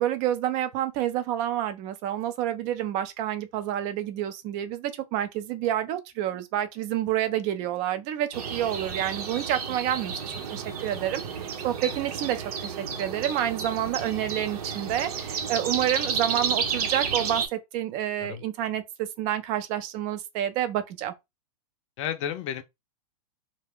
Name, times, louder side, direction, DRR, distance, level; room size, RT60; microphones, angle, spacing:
voice 1, 0.0-21.1, right 11 dB, 35° right, 0.5 m, -29 dB
sound 1, 8.3-17.5, right 6 dB, 70° right, 0.8 m, -31 dB
voice 2, 22.0-22.6, left 9 dB, 50° left, 0.5 m, -32 dB
2.4 x 2.2 x 3.4 m
hypercardioid pair, 125°, 20 cm